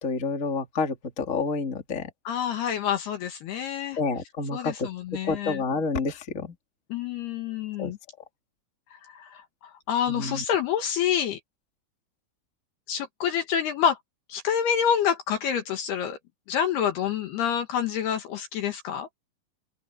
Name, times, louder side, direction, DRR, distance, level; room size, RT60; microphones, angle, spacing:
voice 1, 0.0-2.1 4.0-4.9 5.3-6.5 7.8-7.9 10.1-10.4, left 4 dB, 25° left, 1.6 m, -29 dB
voice 2, 2.2-4.0 4.5-5.6 6.9-8.0 8.9-11.4 12.9-14.0 14.3-16.2 16.5-19.1, left 8 dB, 65° left, 2.9 m, -27 dB
omnidirectional pair, 5.9 m